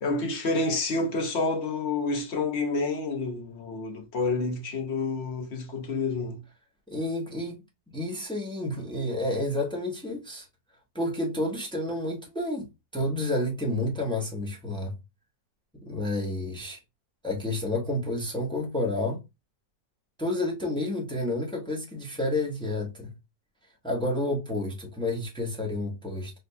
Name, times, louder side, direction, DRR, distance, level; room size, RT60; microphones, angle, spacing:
voice 1, 0.0-6.4, left 3 dB, 60° left, 0.8 m, -29 dB
voice 2, 6.9-7.6 7.9-10.5 10.9-12.7 12.9-15.0 15.8-16.8 17.2-19.2 20.2-23.1 23.8-26.3, left 1 dB, 5° left, 0.4 m, -30 dB
4.1 x 2.1 x 2.6 m
omnidirectional pair, 1.7 m